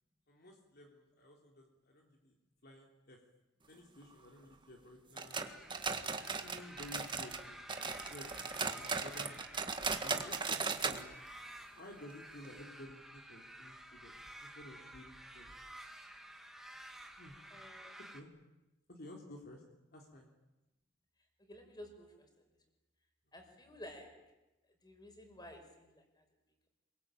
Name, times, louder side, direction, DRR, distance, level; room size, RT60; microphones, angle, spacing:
voice 1, 0.3-2.4 2.6-3.2 3.7-5.4 6.0-8.4 8.7-9.5 10.0-11.1 11.7-14.1 14.4-15.6 17.1-17.4 18.1-18.3 18.9-19.6 19.9-20.3, left 1 dB, 55° left, 1 dB, 3.3 m, -53 dB
sound 1, 5.2-7.4 7.7-11.0 11.3-11.4 11.8-11.9 12.4-12.5, right 4 dB, 25° right, 1.8 m, -37 dB
sound 2, 5.3-18.2, right 1 dB, ahead, 2.2 m, -52 dB
voice 2, 17.5-18.0 21.5-22.4 23.3-24.1 24.8-26.2, left 1 dB, 20° left, 4 dB, 5.9 m, -53 dB
26.5 x 23.5 x 9.1 m, 0.99 s
head